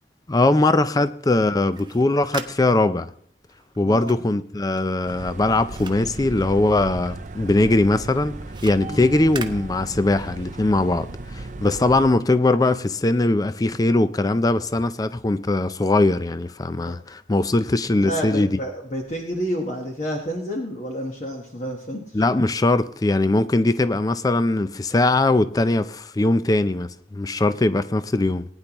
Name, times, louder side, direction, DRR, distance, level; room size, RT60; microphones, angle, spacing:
voice 1, 0.3-3.1 3.8-8.4 8.6-18.6 22.1-28.4, left 2 dB, 20° left, 0.4 m, -21 dB
sound 1, 1.7-7.1 7.4-10.4, right 5 dB, 25° right, 0.9 m, -41 dB
voice 2, 3.8-4.2 8.9-9.1 16.9-17.0 18.0-22.2, equal, 40° left, 1.3 m, -29 dB
sound 2, 5.1-12.1, right 2 dB, 45° right, 0.6 m, -36 dB
19.0 x 9.9 x 3.0 m
head